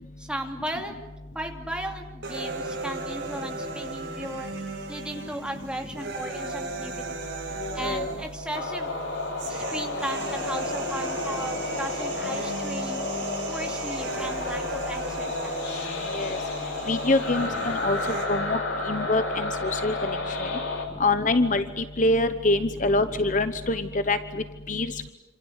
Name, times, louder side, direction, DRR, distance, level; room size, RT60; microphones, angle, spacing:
voice 1, 0.2-0.9 1.3-4.5 4.9-7.0 7.7-8.9 9.4-13.1 13.4-15.9 17.3-17.7 20.9-21.1 22.6-23.2, right 1 dB, 5° right, 3 dB, 2.7 m, -36 dB
sound 1, 2.2-18.2, right 3 dB, 60° right, 7.3 m, -36 dB
voice 2, 7.6-8.2 16.1-16.4 16.9-18.0 18.3-18.6 18.9-20.5 21.0-25.1, left 2 dB, 40° left, 11 dB, 1.0 m, -25 dB
sound 2, 8.5-20.9, left 2 dB, 75° left, 4.1 m, -31 dB
27.0 x 26.5 x 8.2 m, 1.1 s
head